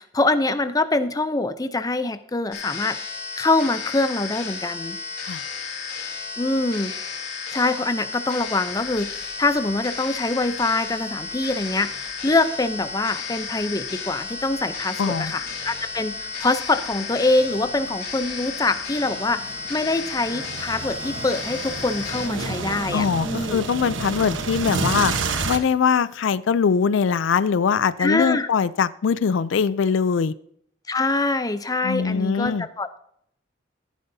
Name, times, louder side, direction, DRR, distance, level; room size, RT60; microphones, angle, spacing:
voice 1, 0.0-5.0 6.4-6.9 7.5-23.6 28.0-28.5 30.9-33.0, left 2 dB, 20° left, 10 dB, 0.5 m, -24 dB
sound 1, 2.5-22.3, left 5 dB, 55° left, 3.1 m, -33 dB
sound 2, 8.8-9.0 9.5-9.6 10.6-12.2 12.9-25.6, right 3 dB, 75° right, 1.1 m, -32 dB
voice 2, 15.0-15.3 22.9-25.1 25.4-30.3 31.8-32.7, left 6 dB, 75° left, 17 dB, 0.4 m, -22 dB
14.0 x 10.5 x 2.7 m, 0.68 s
head